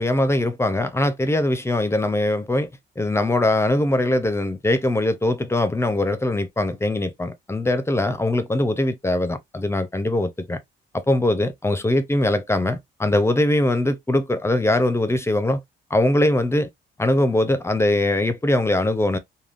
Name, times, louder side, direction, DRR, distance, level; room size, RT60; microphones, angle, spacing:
voice 1, 0.0-2.7 3.0-10.6 10.9-15.6 15.9-16.7 17.0-19.2, left 1 dB, 15° left, 0.6 m, -21 dB
3.4 x 2.2 x 2.5 m
cardioid pair, 90°, 20 cm